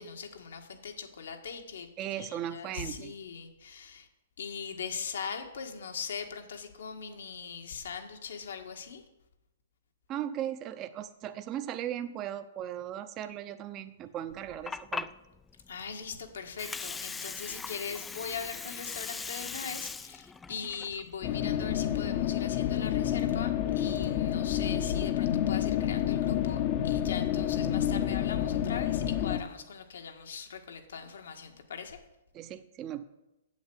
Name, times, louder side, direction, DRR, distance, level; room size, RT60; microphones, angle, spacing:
voice 1, 0.0-1.9 2.1-4.1 4.4-9.0 15.7-32.0, left 6 dB, 80° left, 5 dB, 1.7 m, -40 dB
voice 2, 2.0-3.1 10.1-15.1 32.3-33.0, right 11 dB, 30° right, 10 dB, 0.6 m, -37 dB
Water, 14.3-22.3, left 4 dB, 10° left, 0.3 m, -41 dB
sound 1, 21.2-29.4, left 10 dB, 40° left, 0.8 m, -29 dB
8.3 x 7.6 x 7.9 m, 0.94 s
hypercardioid pair, 140°, 0 cm